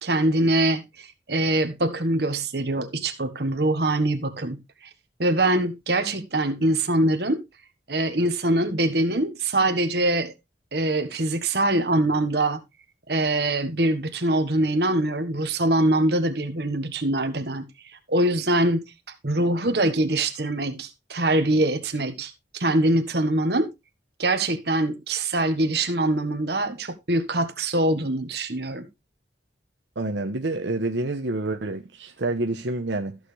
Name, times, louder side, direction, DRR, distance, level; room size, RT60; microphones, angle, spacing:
voice 1, 0.0-4.6 5.2-7.4 7.9-10.3 10.7-12.6 13.1-17.7 18.1-18.8 19.2-23.7 24.2-28.9, right 1 dB, 60° right, 1.4 m, -23 dB
voice 2, 30.0-33.2, right 2 dB, 80° right, 1.1 m, -28 dB
14.0 x 6.7 x 3.3 m
head